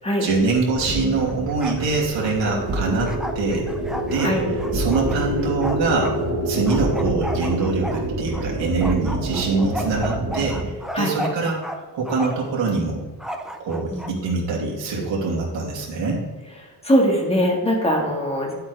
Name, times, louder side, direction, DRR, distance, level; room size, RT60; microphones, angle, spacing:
voice 1, 0.2-3.7 4.1-4.3 4.7-6.2 6.4-10.6 11.0-13.0 13.6-16.2, right 3 dB, 85° right, -3 dB, 2.9 m, -24 dB
sound 1, 0.7-10.7, right 1 dB, 30° right, 1.6 m, -27 dB
Bark, 1.3-1.9 2.1-6.2 6.7-8.5 8.8-11.8 12.0-12.5 13.2-14.1, equal, ahead, 0.4 m, -33 dB
voice 2, 16.8-18.5, equal, 15° left, 0 dB, 1.7 m, -21 dB
11.0 x 8.0 x 3.4 m, 1.2 s
cardioid pair, 170°, 43 cm